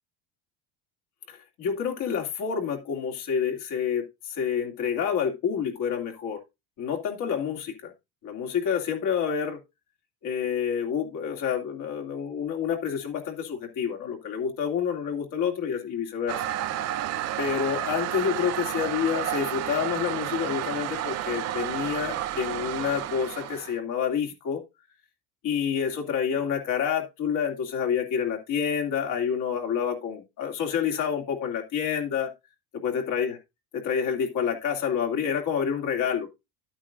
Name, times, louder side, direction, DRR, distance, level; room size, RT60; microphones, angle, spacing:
voice 1, 1.3-6.4 6.8-7.9 8.2-9.6 10.2-16.4 17.4-24.6 25.4-32.3 32.8-33.4 33.7-36.3, left 7 dB, 55° left, 2 dB, 2.7 m, -28 dB
Toilet flush, 16.3-23.8, right 12 dB, 45° right, 0.8 m, -31 dB
12.0 x 8.8 x 2.5 m, 0.23 s
cardioid pair, 160°, 38 cm